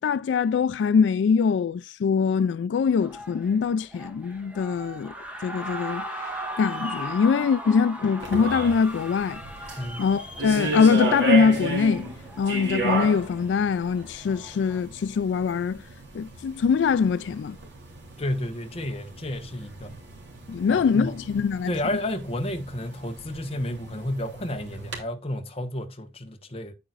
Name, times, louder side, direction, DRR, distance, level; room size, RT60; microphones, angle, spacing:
voice 1, 0.0-5.1 5.4-6.0 6.6-9.4 10.0-12.1 12.4-15.8 16.1-17.6 20.5-21.7, left 6 dB, 80° left, 0.3 m, -23 dB
sound 1, 3.0-14.8, equal, 10° right, 1.4 m, -38 dB
sound 2, 8.2-25.0, right 2 dB, 80° right, 3.0 m, -33 dB
voice 2, 9.8-10.1 18.2-19.9 20.7-21.1 21.7-26.7, left 1 dB, 35° left, 1.1 m, -31 dB
9.0 x 8.6 x 2.5 m
head